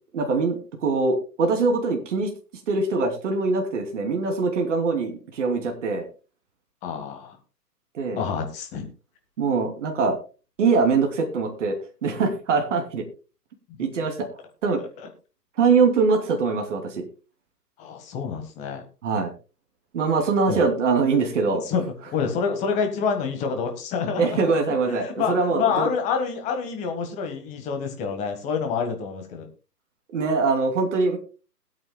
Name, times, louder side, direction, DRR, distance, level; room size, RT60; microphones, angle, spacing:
voice 1, 0.1-2.3 2.7-6.1 7.9-8.2 9.4-10.2 10.6-13.0 13.8-14.3 14.6-14.8 15.6-17.0 19.0-19.3 19.9-21.6 24.2-25.9 30.1-31.2, right 4 dB, 45° right, 4 dB, 2.9 m, -23 dB
voice 2, 6.8-7.4 8.1-8.9 13.7-13.8 15.0-15.1 17.8-18.8 20.5-20.7 21.5-24.4 24.8-29.5, left 6 dB, 15° left, 5 dB, 1.4 m, -27 dB
21.0 x 8.9 x 2.2 m, 0.32 s
figure-of-eight pair, 140°, 49 cm